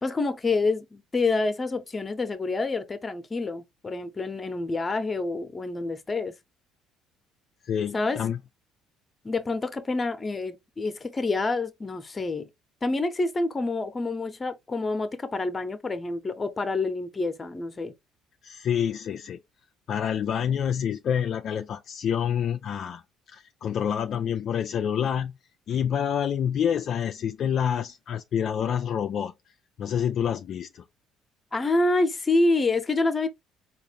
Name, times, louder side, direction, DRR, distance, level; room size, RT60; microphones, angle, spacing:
voice 1, 0.0-6.3 7.9-8.2 9.2-12.5 12.8-17.9 31.5-33.3, left 3 dB, 25° left, 0.8 m, -27 dB
voice 2, 7.6-8.4 18.4-19.4 19.9-23.0 23.3-25.3 25.7-29.3 29.8-30.8, left 8 dB, 55° left, 0.3 m, -27 dB
4.1 x 2.4 x 3.2 m
supercardioid pair, 85°, 0 cm